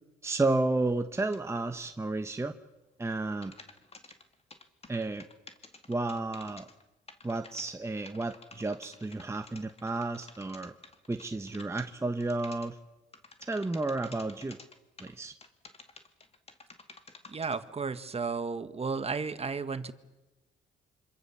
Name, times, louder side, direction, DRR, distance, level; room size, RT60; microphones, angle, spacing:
voice 1, 0.2-2.5 3.0-3.5 4.9-5.3 5.9-6.7 7.2-10.7 11.1-12.8 13.4-14.6 15.0-15.3, right 2 dB, 15° right, 7 dB, 1.1 m, -32 dB
sound 1, 1.3-1.4 3.3-6.8 7.1-7.7 8.1-11.9 12.2-12.7 13.1-15.1 15.4-17.6, left 3 dB, 30° left, 2.3 m, -51 dB
voice 2, 17.3-19.9, right 4 dB, 30° right, 11 dB, 1.5 m, -33 dB
26.5 x 26.0 x 7.2 m, 1.1 s
cardioid pair, 90°, 20 cm